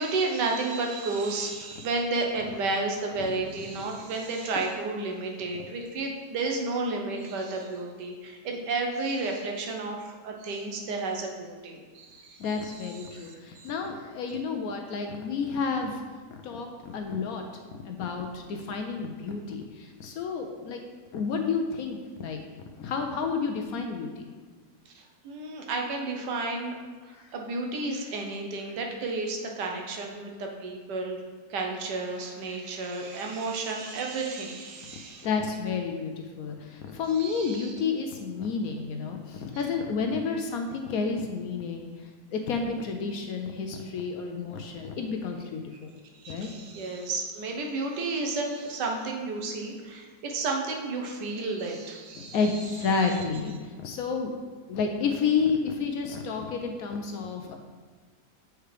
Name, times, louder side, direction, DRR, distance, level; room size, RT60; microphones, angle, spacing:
voice 1, 0.0-13.3 13.5-13.7 24.9-26.8 27.0-31.2 31.5-35.3 37.1-37.7 46.2-52.4 53.0-53.1, right 3 dB, 80° right, 2 dB, 1.4 m, -32 dB
voice 2, 12.4-16.0 16.3-17.4 17.8-20.8 21.1-22.4 22.8-24.3 27.1-27.3 35.2-45.9 46.3-46.5 52.1-54.4 54.7-57.6, left 5 dB, 70° left, 4 dB, 0.9 m, -30 dB
7.8 x 4.6 x 3.3 m, 1.4 s
omnidirectional pair, 1.8 m